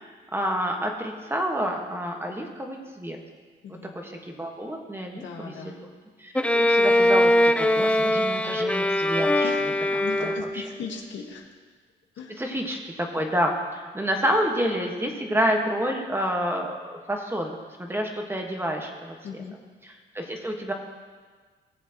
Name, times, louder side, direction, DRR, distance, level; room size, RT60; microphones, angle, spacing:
voice 1, 0.3-3.2 3.7-5.8 6.2-9.5 9.9-10.6 12.3-17.5 17.8-19.1 19.8-20.7, equal, 10° right, 2 dB, 1.4 m, -29 dB
voice 2, 3.6-3.9 5.1-5.8 9.4-9.6 10.0-11.4 12.2-12.3 19.2-19.6, left 6 dB, 70° left, 1 dB, 1.4 m, -37 dB
Bowed string instrument, 6.3-10.8, left 1 dB, 5° left, 0.5 m, -22 dB
18.0 x 7.2 x 3.0 m, 1.5 s
cardioid pair, 90°, 20 cm